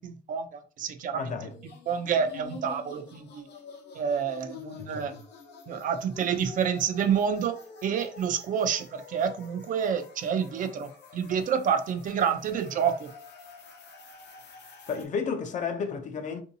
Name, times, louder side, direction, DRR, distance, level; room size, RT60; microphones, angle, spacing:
voice 1, 0.0-1.4 1.9-3.5 3.9-5.1 5.7-13.1, right 7 dB, 50° right, 0.4 m, -28 dB
voice 2, 1.1-1.5 4.8-5.1 14.9-16.4, left 5 dB, 45° left, 0.5 m, -32 dB
sound 1, 1.5-15.1, left 4 dB, 90° left, 0.8 m, -47 dB
3.7 x 2.7 x 2.6 m
cardioid pair, 180°, 17 cm